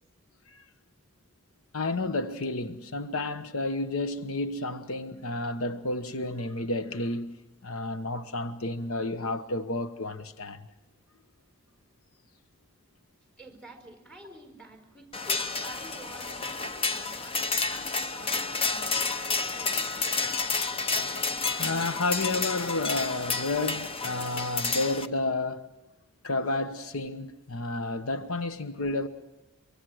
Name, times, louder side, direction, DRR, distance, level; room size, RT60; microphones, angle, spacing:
voice 1, 1.7-7.4 7.6-10.6 21.6-25.7 26.2-29.1, left 2 dB, 85° left, 1.2 m, -31 dB
voice 2, 13.4-17.4 17.7-20.4, right 2 dB, 5° left, 4.6 m, -49 dB
sound 1, 15.1-25.1, left 4 dB, 25° left, 0.8 m, -30 dB
24.5 x 24.5 x 6.3 m
head